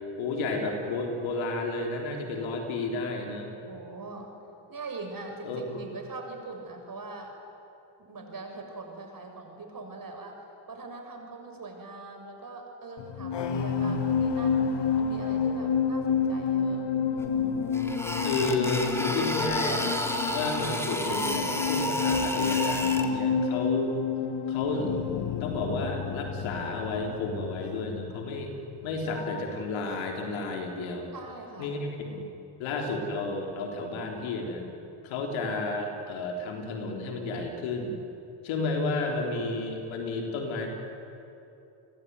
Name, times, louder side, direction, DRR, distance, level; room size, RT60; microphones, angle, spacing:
voice 1, 0.2-3.5 5.4-5.8 18.2-19.9 20.3-24.0 24.5-24.9 25.4-28.5 28.8-31.1 31.6-32.2 32.6-34.7 35.0-38.0 38.4-40.7, left 3 dB, 90° left, 2 dB, 3.8 m, -32 dB
voice 2, 3.7-4.3 4.7-7.3 8.0-10.4 10.7-14.6 15.0-17.7 18.8-19.0 31.1-31.8, right 3 dB, 45° right, 3 dB, 6.7 m, -42 dB
sound 1, 13.0-29.6 29.9-30.2, left 6 dB, 65° left, 2.0 m, -30 dB
sound 2, 17.2-17.3 17.7-23.1, equal, 5° left, 3.5 m, -30 dB
29.0 x 21.0 x 9.6 m, 2.8 s
supercardioid pair, 60°, 46 cm